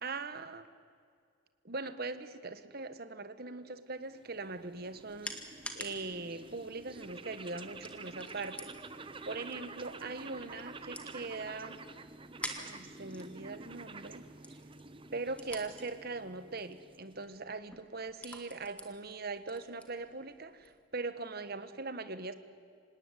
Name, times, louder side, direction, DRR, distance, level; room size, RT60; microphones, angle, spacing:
voice 1, 0.0-0.7 1.6-5.4 5.7-8.7 9.2-11.8 12.6-14.2 15.1-22.4, right 3 dB, 50° right, 11 dB, 1.3 m, -41 dB
sound 1, 4.0-17.4, right 3 dB, 25° right, 0.8 m, -49 dB
sound 2, 4.4-20.8, left 1 dB, 5° left, 1.8 m, -50 dB
26.0 x 18.5 x 9.9 m, 2.2 s
head